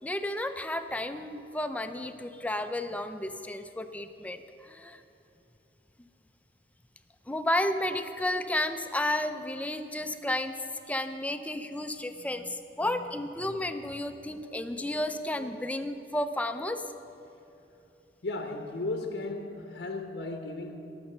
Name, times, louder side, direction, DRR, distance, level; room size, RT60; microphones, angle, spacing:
voice 1, 0.0-5.0 7.3-10.5 10.9-16.8, left 1 dB, 10° left, 9 dB, 0.5 m, -32 dB
voice 2, 18.2-20.8, left 2 dB, 80° left, 4 dB, 1.0 m, -35 dB
18.0 x 6.9 x 6.7 m, 2.9 s
head